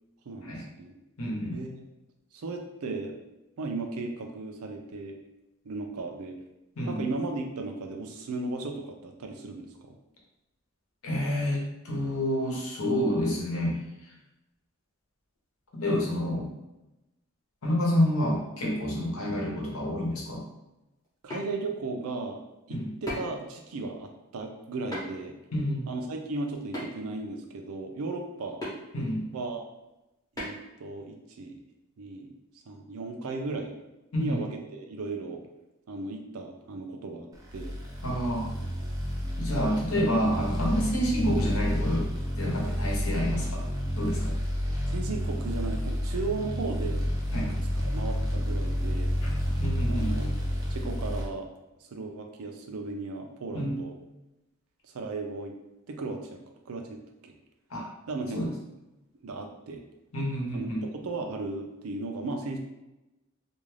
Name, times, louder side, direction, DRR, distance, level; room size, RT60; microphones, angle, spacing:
voice 1, 0.3-0.9 1.5-1.8 2.3-3.1 3.6-5.2 5.6-6.4 6.9-10.0 21.2-22.4 22.7-25.4 25.9-28.6 29.3-29.7 30.4-31.6 32.0-32.3 32.7-33.7 34.2-35.4 35.9-37.7 44.9-47.0 47.4-49.1 49.9-50.3 50.7-51.5 51.8-53.9 54.8-55.5 55.9-56.4 56.7-57.3 58.1-58.5 59.2-59.8 60.5-60.7 61.0-62.6, right 3 dB, 75° right, 3 dB, 0.4 m, -36 dB
voice 2, 1.2-1.6 6.8-7.0 11.0-13.8 15.7-16.5 17.6-20.4 22.7-22.9 25.5-25.9 28.9-29.2 34.1-34.4 38.0-38.5 39.4-42.1 42.4-43.6 44.0-44.4 47.3-47.5 49.6-50.1 53.5-53.8 57.7-57.9 58.3-58.5 60.1-60.8, equal, 75° left, -3 dB, 0.9 m, -28 dB
sound 1, 21.0-21.4 23.1-23.4 24.9-25.2 26.7-27.2 28.6-28.7 30.3-30.6, left 1 dB, 15° left, 0.7 m, -36 dB
sound 2, 37.5-51.3, equal, 15° right, 0.3 m, -30 dB
2.4 x 2.3 x 3.2 m, 0.98 s
head